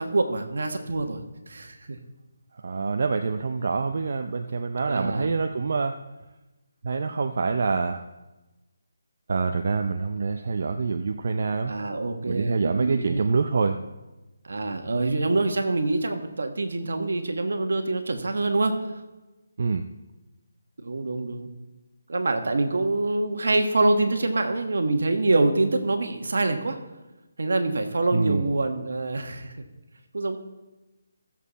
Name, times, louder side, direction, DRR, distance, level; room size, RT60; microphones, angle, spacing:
voice 1, 0.0-2.0 4.9-5.3 11.7-13.3 14.4-18.9 20.8-21.5 22.1-26.8 27.4-29.5 30.1-30.4, right 2 dB, 75° right, 5 dB, 1.5 m, -25 dB
voice 2, 2.6-6.0 6.8-8.0 9.3-11.8 12.3-13.8 19.6-19.9 28.1-28.4, right 4 dB, 55° right, 6 dB, 0.5 m, -26 dB
15.0 x 7.4 x 4.2 m, 1.1 s
hypercardioid pair, 165°, 0 cm